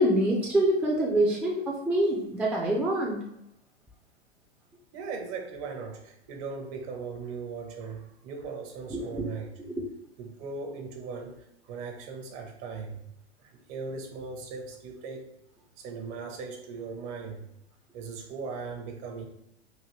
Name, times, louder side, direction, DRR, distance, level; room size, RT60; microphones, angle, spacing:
voice 1, 0.0-3.2 8.9-9.3 9.6-9.9, right 1 dB, 5° right, -2 dB, 0.5 m, -25 dB
voice 2, 4.9-9.5 10.2-11.4 11.6-13.0 13.4-15.3 15.8-17.5 17.9-19.3, right 4 dB, 40° right, 3 dB, 0.9 m, -38 dB
4.0 x 2.6 x 3.1 m, 0.79 s
hypercardioid pair, 100°, 33 cm